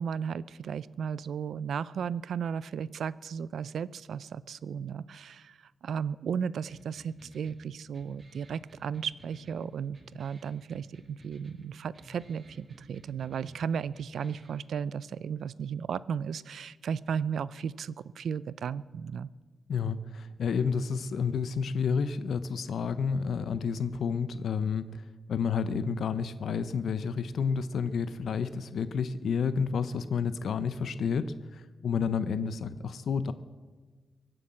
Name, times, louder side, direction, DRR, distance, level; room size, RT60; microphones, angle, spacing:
voice 1, 0.0-19.3, right 7 dB, 85° right, 19 dB, 0.4 m, -35 dB
sound 1, 6.7-14.7, right 1 dB, 30° right, 2.2 m, -53 dB
voice 2, 19.7-24.8 25.3-31.3 31.5-33.3, left 6 dB, 80° left, 13 dB, 0.6 m, -30 dB
23.5 x 7.8 x 7.6 m, 1.4 s
wide cardioid pair, 130°, 0 cm